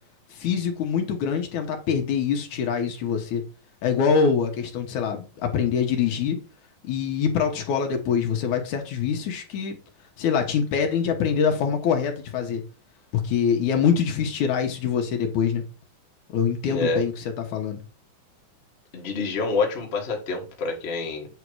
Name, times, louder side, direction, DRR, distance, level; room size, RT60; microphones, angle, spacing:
voice 1, 0.3-3.4 3.8-6.4 6.8-9.8 10.2-12.6 13.1-15.6 16.3-17.8, left 7 dB, 65° left, 2.3 m, -24 dB
voice 2, 16.7-17.0 18.9-21.3, left 3 dB, 40° left, 0.8 m, -27 dB
8.3 x 3.7 x 4.7 m
omnidirectional pair, 4.2 m